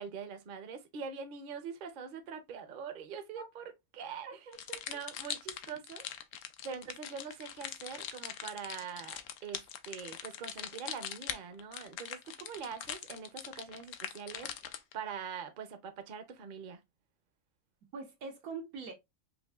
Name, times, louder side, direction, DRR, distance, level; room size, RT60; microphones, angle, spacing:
voice 1, 0.0-4.4 4.9-6.0 6.6-16.8, right 6 dB, 50° right, 0.7 m, -44 dB
voice 2, 4.2-4.8 17.9-18.9, right 4 dB, 85° right, 1.5 m, -43 dB
sound 1, 4.5-14.9, left 10 dB, 85° left, 1.0 m, -42 dB
5.4 x 2.6 x 2.3 m
omnidirectional pair, 1.5 m